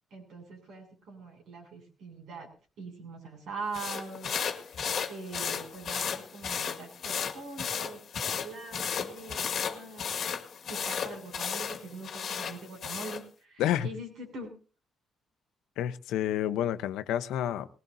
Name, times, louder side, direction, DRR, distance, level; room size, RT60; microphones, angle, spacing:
voice 1, 0.1-2.5 2.8-4.4 4.6-8.0 8.3-10.0 10.7-14.5, right 3 dB, 75° right, 7.0 m, -43 dB
sound 1, 3.7-13.2, left 7 dB, 60° left, 1.8 m, -34 dB
voice 2, 15.8-17.7, left 11 dB, 90° left, 0.8 m, -29 dB
20.0 x 19.0 x 2.7 m
cardioid pair, 90°, 0 cm